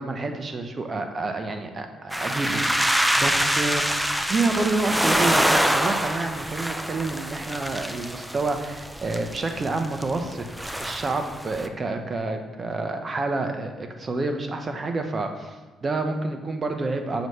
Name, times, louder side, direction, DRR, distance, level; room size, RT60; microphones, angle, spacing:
voice 1, 0.0-10.5 10.8-17.3, right 3 dB, 35° right, 5 dB, 0.8 m, -28 dB
sound 1, 2.1-11.7, equal, 5° right, 0.4 m, -25 dB
6.2 x 3.1 x 5.4 m, 1.3 s
cardioid pair, 90°, 0 cm